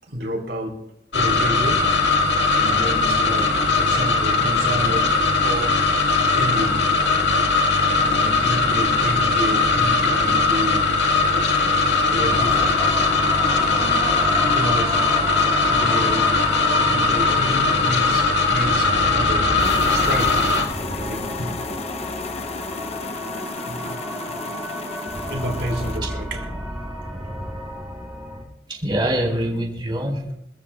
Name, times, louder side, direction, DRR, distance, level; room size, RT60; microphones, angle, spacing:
voice 1, 0.1-0.8 1.1-1.8 2.4-5.8 6.3-6.8 7.9-10.9 12.0-12.8 14.4-15.0 15.7-20.5 20.9-21.5 23.6-24.0 25.3-26.4, equal, 70° right, 2 dB, 4.7 m, -30 dB
Weird Cold War Machine, 1.1-20.7, left 3 dB, 80° left, 1.9 m, -19 dB
sound 1, 12.3-28.4, equal, 10° right, 6.6 m, -33 dB
sound 2, 19.6-26.0, left 3 dB, 35° left, 0.7 m, -32 dB
voice 2, 28.7-30.3, right 1 dB, 25° right, 0 dB, 4.9 m, -24 dB
26.5 x 14.5 x 2.4 m, 0.79 s
head